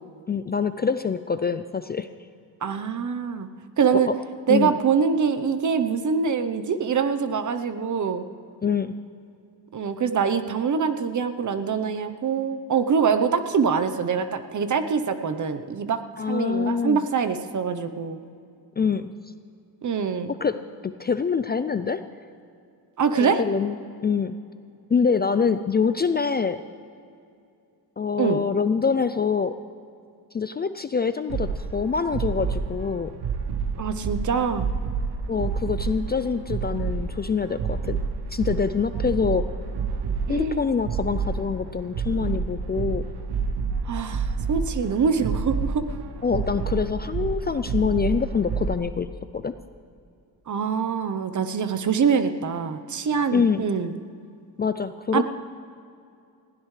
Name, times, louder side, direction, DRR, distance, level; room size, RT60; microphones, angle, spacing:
voice 1, 0.3-2.1 3.9-4.1 4.5-4.8 8.6-8.9 16.2-17.1 18.8-19.1 20.4-22.0 23.2-23.8 24.0-24.4 24.9-26.6 28.0-29.5 30.3-33.1 35.3-38.0 38.3-39.5 40.3-43.1 46.2-49.1 49.3-49.5 53.3-53.6 54.6-55.2, left 5 dB, 25° left, 11 dB, 0.4 m, -25 dB
voice 2, 2.6-3.5 3.8-4.1 4.5-8.3 9.7-16.0 16.3-18.2 19.8-20.3 23.0-23.4 28.2-28.4 33.8-34.7 40.3-40.6 43.9-45.8 50.5-53.9 55.1-55.2, right 6 dB, 45° right, 9 dB, 0.9 m, -24 dB
sound 1, 31.3-48.7, right 5 dB, 70° right, 1.0 m, -29 dB
20.5 x 16.0 x 3.3 m, 2.4 s
cardioid pair, 105°, 41 cm